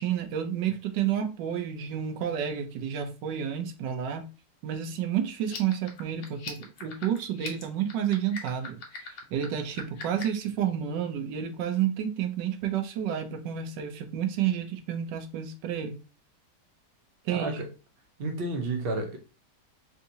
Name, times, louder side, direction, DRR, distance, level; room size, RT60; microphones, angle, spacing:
voice 1, 0.0-4.3 4.6-16.0 17.2-17.7, right 9 dB, 85° right, 1.2 m, -30 dB
sound 1, 5.4-10.4, left 5 dB, 55° left, 0.9 m, -42 dB
voice 2, 17.3-17.7 18.2-19.2, right 2 dB, 55° right, 0.6 m, -31 dB
3.6 x 2.7 x 2.6 m
omnidirectional pair, 1.9 m